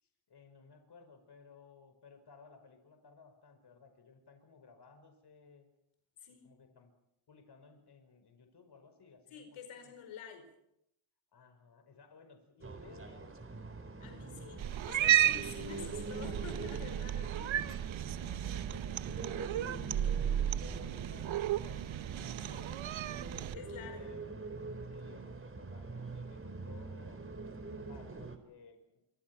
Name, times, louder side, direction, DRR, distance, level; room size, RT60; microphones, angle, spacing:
voice 1, 0.0-5.7 6.3-6.9 7.3-9.9 11.3-13.3 18.4-22.0 23.7-24.3 24.9-27.3 27.7-29.0, left 5 dB, 50° left, 7 dB, 5.3 m, -58 dB
voice 2, 6.2-6.5 9.3-10.5 14.0-17.6 22.4-22.8 23.5-24.1, left 5 dB, 80° left, 6 dB, 5.1 m, -49 dB
sound 1, 12.6-28.4, right 3 dB, 25° right, 3.9 m, -45 dB
Cat, 14.6-23.6, right 12 dB, 65° right, 0.9 m, -33 dB
27.0 x 25.5 x 6.0 m, 0.81 s
cardioid pair, 90°, 50 cm